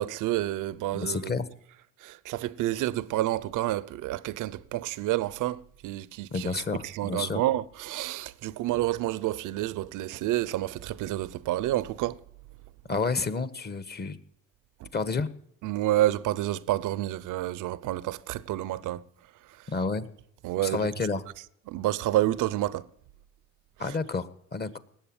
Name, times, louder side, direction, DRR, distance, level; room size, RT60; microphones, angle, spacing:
voice 1, 0.0-1.3 2.0-12.2 14.8-14.9 15.6-19.0 20.4-20.9 21.7-22.9 23.9-24.0, right 15 dB, 90° right, 0.7 m, -29 dB
voice 2, 0.9-1.5 6.3-7.4 12.9-14.2 14.9-15.3 19.7-20.1 20.6-21.2 23.8-24.8, left 4 dB, 35° left, 1.4 m, -30 dB
19.0 x 8.0 x 8.9 m
cardioid pair, 90°, 30 cm